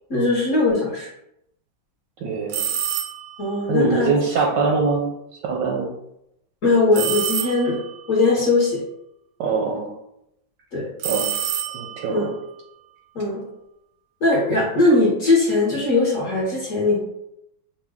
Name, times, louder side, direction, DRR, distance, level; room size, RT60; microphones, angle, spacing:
voice 1, 0.1-1.1 3.4-4.1 6.6-7.8 8.1-8.8 10.7-10.9 12.1-12.3 13.1-13.4 14.2-17.0, left 2 dB, 50° left, -5 dB, 1.0 m, -20 dB
voice 2, 2.2-2.7 3.7-5.9 9.4-9.9 11.0-11.3 11.7-12.3, right 4 dB, 75° right, 0 dB, 1.1 m, -23 dB
sound 1, 2.5-3.4 6.9-7.9 11.0-12.1, right 9 dB, 90° right, 1.6 m, -27 dB
5.7 x 2.2 x 3.5 m, 0.81 s
omnidirectional pair, 2.4 m